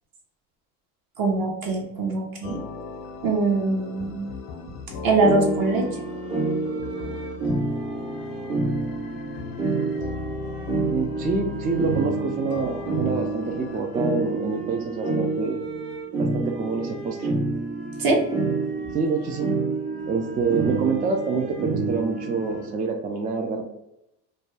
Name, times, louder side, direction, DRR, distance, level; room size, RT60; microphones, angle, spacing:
voice 1, 1.2-2.6 3.2-4.3 5.0-5.8 18.0-18.2, right 3 dB, 50° right, 0 dB, 1.0 m, -22 dB
sound 1, 2.4-13.8, left 5 dB, 75° left, 0.7 m, -37 dB
sound 2, 5.2-22.7, right 3 dB, 85° right, 1.2 m, -28 dB
voice 2, 10.9-15.6 16.2-17.3 18.9-19.5 20.1-23.6, right 4 dB, 20° right, 2 dB, 0.3 m, -27 dB
2.6 x 2.2 x 3.2 m, 0.86 s
supercardioid pair, 85°, 44 cm